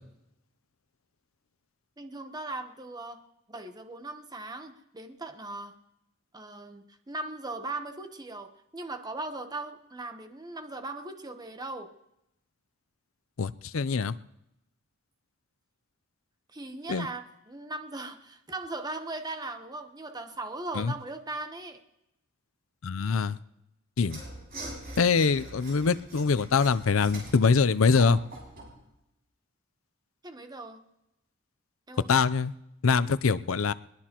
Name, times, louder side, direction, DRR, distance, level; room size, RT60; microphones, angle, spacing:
voice 1, 2.0-3.2 3.5-5.8 6.3-11.9 16.5-21.8 30.2-30.8 31.9-32.1, right 2 dB, 20° right, 7 dB, 1.0 m, -39 dB
voice 2, 13.4-14.1 16.9-17.1 20.7-20.9 22.8-23.4 24.0-24.2 25.0-28.2 32.1-32.5 32.8-33.7, left 5 dB, 80° left, 15 dB, 0.6 m, -24 dB
Mechanisms / Sawing, 24.0-28.8, right 1 dB, 50° right, 6.3 m, -43 dB
21.0 x 21.0 x 3.0 m, 0.87 s
head